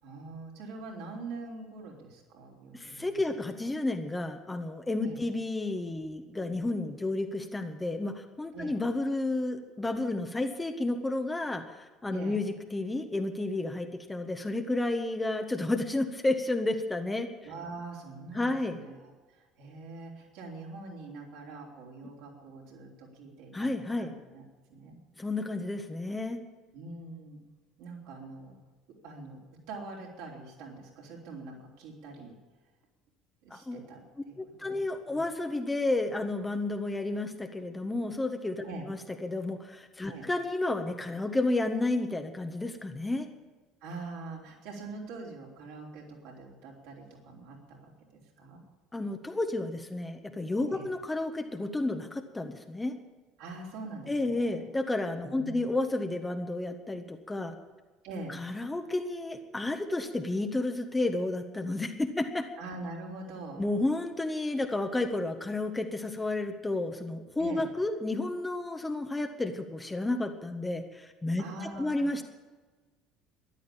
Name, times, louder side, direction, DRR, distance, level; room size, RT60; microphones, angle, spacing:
voice 1, 0.0-3.1 5.0-5.2 8.5-8.7 12.1-12.4 17.4-23.7 24.0-24.4 24.7-25.0 26.7-27.4 27.8-28.6 28.9-29.4 29.7-32.4 33.4-35.3 38.6-38.9 40.1-40.3 43.8-48.6 50.7-50.9 53.4-54.7 55.2-55.6 58.0-58.4 62.6-63.6 67.4-67.7 71.4-72.1, right 3 dB, 60° right, -2 dB, 4.0 m, -44 dB
voice 2, 2.7-17.3 18.3-18.8 23.5-24.1 25.2-26.4 33.5-33.8 34.4-43.3 48.9-52.9 54.1-57.5 58.3-62.5 63.6-71.4 71.8-72.2, left 2 dB, 15° left, 5 dB, 1.5 m, -31 dB
13.5 x 11.5 x 8.7 m, 1.3 s
figure-of-eight pair, 60°, 0 cm